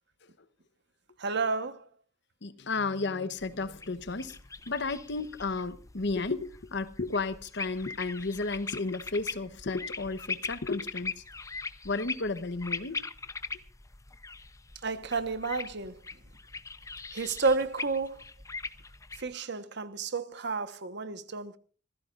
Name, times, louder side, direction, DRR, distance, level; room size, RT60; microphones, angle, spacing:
voice 1, 1.2-1.9 14.8-16.0 17.1-18.2 19.2-21.6, right 4 dB, 65° right, 1.2 m, -31 dB
voice 2, 2.4-4.4 4.7-11.2 11.8-13.0, left 3 dB, 65° left, 1.0 m, -33 dB
sound 1, 3.4-19.3, left 4 dB, 15° left, 0.7 m, -41 dB
25.5 x 15.5 x 2.5 m
head